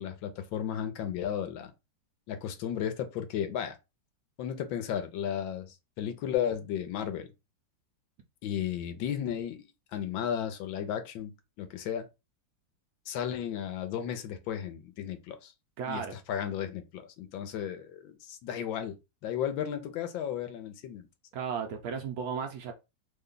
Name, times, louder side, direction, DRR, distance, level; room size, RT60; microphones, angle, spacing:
voice 1, 0.0-1.7 2.3-3.8 4.4-7.3 8.4-11.3 11.6-12.0 13.1-15.5 15.9-19.0 19.2-21.1, left 9 dB, 80° left, 1.4 m, -34 dB
voice 2, 15.8-16.2 21.3-22.7, right 6 dB, 70° right, 0.9 m, -34 dB
3.4 x 2.2 x 3.8 m
omnidirectional pair, 2.1 m